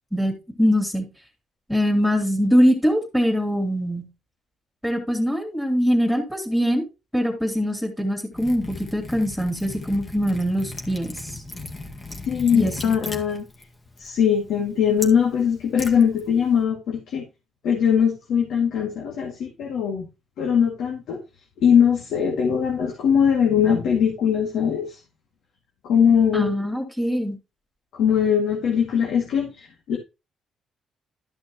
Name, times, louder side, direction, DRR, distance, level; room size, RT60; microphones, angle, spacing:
voice 1, 0.1-1.1 1.7-4.1 4.8-6.9 7.1-11.4 12.5-12.7 26.3-27.4, equal, ahead, 2 dB, 3.0 m, -22 dB
Liquid, 8.3-16.6, left 2 dB, 30° left, 1.9 m, -38 dB
voice 2, 12.3-13.5 14.0-17.2 17.6-20.1 20.4-21.2 21.6-25.0 25.8-26.5 27.9-30.0, left 7 dB, 80° left, 1 dB, 2.1 m, -21 dB
13.0 x 6.2 x 3.0 m, 0.27 s
cardioid pair, 90°, 0 cm